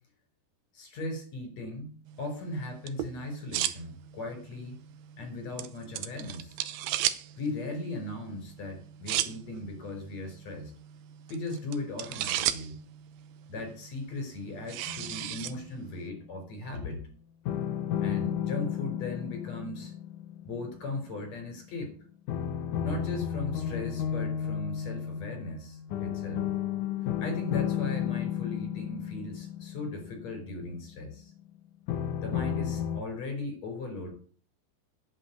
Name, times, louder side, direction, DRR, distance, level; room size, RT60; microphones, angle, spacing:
voice 1, 0.7-4.8 5.2-6.6 7.4-10.7 11.3-12.8 13.5-17.1 18.0-19.9 20.4-21.9 22.8-26.5 27.2-31.3 32.2-34.1, left 2 dB, 40° left, 4 dB, 5.8 m, -38 dB
sound 1, 2.1-16.1, right 12 dB, 80° right, 2.2 m, -37 dB
sound 2, 14.9-16.1 17.5-21.5 22.3-31.1 31.9-33.0, left 9 dB, 85° left, 1.8 m, -33 dB
9.9 x 8.7 x 8.4 m, 0.43 s
omnidirectional pair, 5.2 m